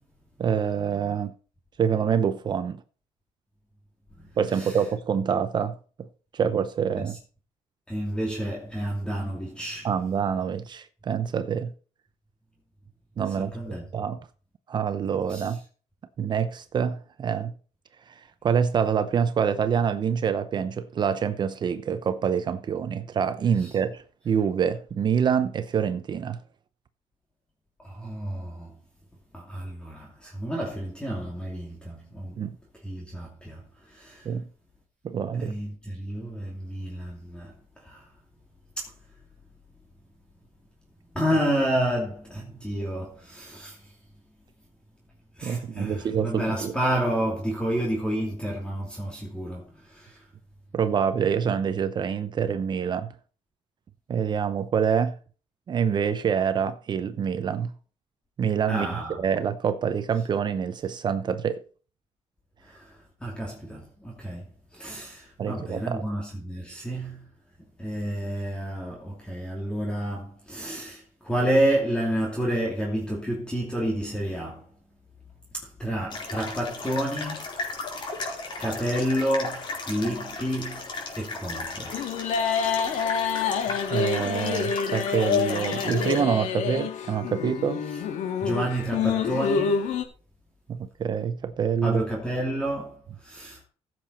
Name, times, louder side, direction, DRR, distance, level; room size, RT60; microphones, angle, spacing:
voice 1, 0.4-1.3 1.8-2.8 4.4-6.1 6.3-7.2 9.8-11.7 13.2-14.2 14.7-15.6 16.2-17.5 18.1-26.4 32.4-32.6 34.2-34.5 35.0-35.5 45.4-46.7 50.7-53.1 54.1-55.1 55.7-57.7 58.4-58.9 59.2-61.6 65.4-66.0 83.9-87.8 90.7-92.0, right 7 dB, 40° right, 0.8 m, -26 dB
voice 2, 4.2-4.8 7.9-9.9 13.3-13.9 15.3-15.5 23.6-23.7 27.8-28.7 29.3-32.4 32.8-33.6 33.9-34.3 35.4-37.5 37.8-38.1 38.8-38.9 41.1-43.9 45.4-50.2 58.7-59.2 62.6-67.3 67.8-74.6 75.5-77.5 78.1-78.3 78.6-80.9 81.2-82.0 88.4-89.8 91.8-93.6, right 1 dB, 10° left, 2.6 m, -30 dB
sound 1, 76.1-86.2, left 3 dB, 40° left, 4.4 m, -35 dB
sound 2, 81.9-90.0, left 6 dB, 80° left, 2.0 m, -27 dB
15.5 x 7.7 x 4.3 m
cardioid pair, 155°, 12 cm